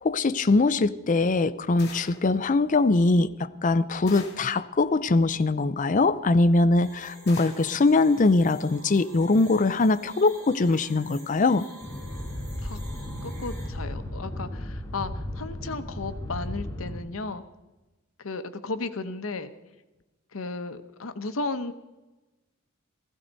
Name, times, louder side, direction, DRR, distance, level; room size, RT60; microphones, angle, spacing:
voice 1, 0.0-11.6, left 3 dB, 40° left, 14 dB, 0.5 m, -22 dB
sound 1, 1.8-2.3 4.1-4.6 7.3-7.8, left 4 dB, 55° left, 2.8 m, -43 dB
sound 2, 6.8-13.7, right 1 dB, 55° right, 6.1 m, -48 dB
sound 3, 11.8-17.0, left 1 dB, 15° left, 1.6 m, -35 dB
voice 2, 13.2-17.4 18.2-19.5 20.3-21.7, left 3 dB, 85° left, 10 dB, 0.9 m, -34 dB
16.0 x 15.5 x 4.0 m, 1.1 s
head